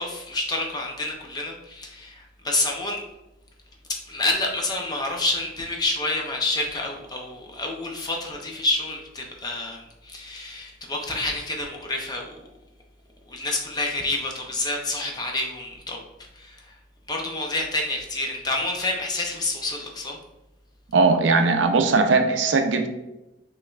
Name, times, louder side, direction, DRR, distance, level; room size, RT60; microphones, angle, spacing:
voice 1, 0.0-3.0 4.1-12.4 13.3-16.0 16.3-16.7 17.1-20.2, left 2 dB, 20° left, 1 dB, 0.5 m, -28 dB
voice 2, 20.9-22.9, right 3 dB, 75° right, 6 dB, 0.5 m, -19 dB
5.4 x 3.1 x 2.3 m, 0.98 s
head